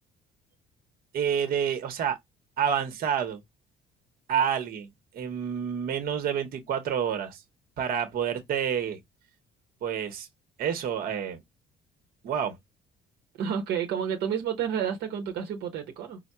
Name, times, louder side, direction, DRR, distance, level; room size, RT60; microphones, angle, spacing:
voice 1, 1.1-2.2 2.6-3.4 4.3-4.9 5.1-7.4 7.8-9.0 9.8-10.3 10.6-11.4 12.2-12.5, right 8 dB, 60° right, 1.0 m, -28 dB
voice 2, 13.4-16.2, right 8 dB, 80° right, 0.9 m, -30 dB
4.2 x 2.1 x 2.3 m
cardioid pair, 110°, 17 cm